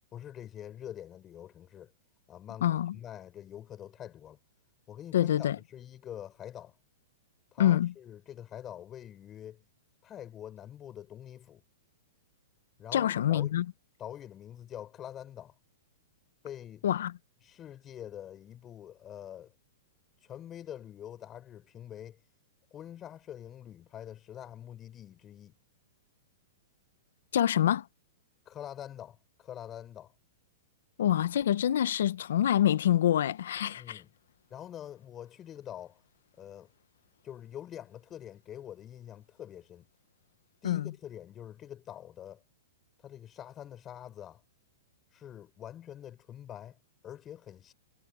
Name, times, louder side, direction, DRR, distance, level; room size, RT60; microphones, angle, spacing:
voice 1, 0.1-1.9 2.3-4.4 4.9-6.8 7.5-9.6 10.0-11.6 12.8-13.5 14.0-15.5 16.4-16.9 17.4-19.5 20.2-22.2 22.7-25.5 28.5-30.1 33.8-34.1 34.5-36.0 36.4-36.7 37.2-39.9 40.6-42.4 43.0-44.4 45.1-46.8 47.0-47.7, left 10 dB, 20° left, 7.6 m, -45 dB
voice 2, 2.6-2.9 5.1-5.6 7.6-7.9 12.9-13.6 16.8-17.1 27.3-27.9 31.0-34.0 40.6-40.9, left 11 dB, 75° left, 1.2 m, -26 dB
hypercardioid pair, 145°, 0 cm